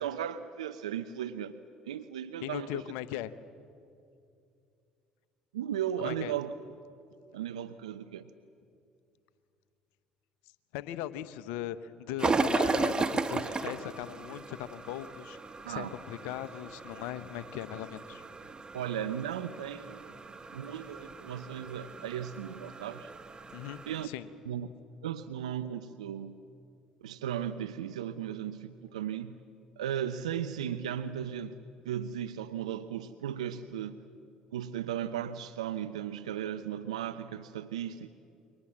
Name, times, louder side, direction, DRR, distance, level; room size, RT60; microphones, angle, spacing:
voice 1, 0.0-1.6 1.9-2.8 5.5-6.5 7.3-8.3 15.6-15.9 18.7-20.1 20.5-23.1 23.9-24.1 24.5-24.7 25.0-26.3 27.0-29.4 29.8-31.6 31.8-34.0 34.5-38.1, right 9 dB, 85° right, 11 dB, 0.7 m, -36 dB
voice 2, 2.4-3.3 6.0-6.3 10.7-15.4 15.7-18.2 23.5-24.3, left 12 dB, 70° left, 14 dB, 1.0 m, -39 dB
sound 1, 12.2-24.1, right 3 dB, 25° right, 1.6 m, -35 dB
28.0 x 23.5 x 7.5 m, 2.5 s
hypercardioid pair, 60°, 3 cm